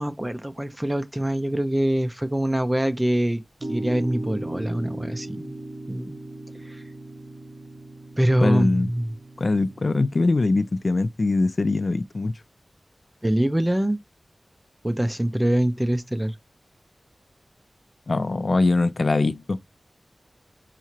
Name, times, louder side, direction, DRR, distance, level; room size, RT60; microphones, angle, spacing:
voice 1, 0.0-3.4 3.7-5.5 5.9-6.2 6.6-6.8 8.2-9.1 13.2-14.0 14.8-16.3, right 1 dB, 15° right, 0.4 m, -24 dB
sound 1, 3.6-10.0, right 1 dB, 70° right, 0.7 m, -37 dB
voice 2, 8.4-8.9 9.4-12.3 18.1-19.6, left 3 dB, 55° left, 0.3 m, -22 dB
4.2 x 2.4 x 2.9 m
wide cardioid pair, 80°, 0 cm